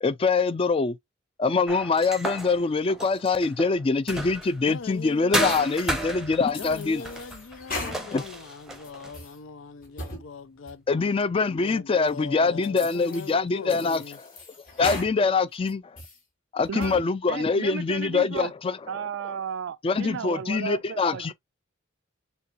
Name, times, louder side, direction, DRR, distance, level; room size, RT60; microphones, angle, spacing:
voice 1, 0.0-1.0 1.4-7.0 8.1-8.2 10.9-14.0 14.8-15.8 16.5-18.8 19.8-21.3, left 4 dB, 30° left, 0.4 m, -24 dB
sound 1, 1.7-4.7 5.3-9.2, right 1 dB, 5° right, 0.7 m, -33 dB
voice 2, 4.7-5.7 6.6-10.8 11.5-14.2, left 5 dB, 85° left, 0.5 m, -40 dB
sound 2, 5.4-6.0 6.5-8.4 8.8-9.4 9.8-10.2 10.7-10.8 11.4-11.5 12.1-12.2 12.6-13.3 13.7-15.1 15.5-16.2 16.6-17.1, left 2 dB, 50° left, 2.0 m, -38 dB
voice 3, 16.7-17.0 17.3-18.5 18.9-21.3, right 7 dB, 70° right, 0.3 m, -34 dB
6.8 x 2.3 x 2.5 m
head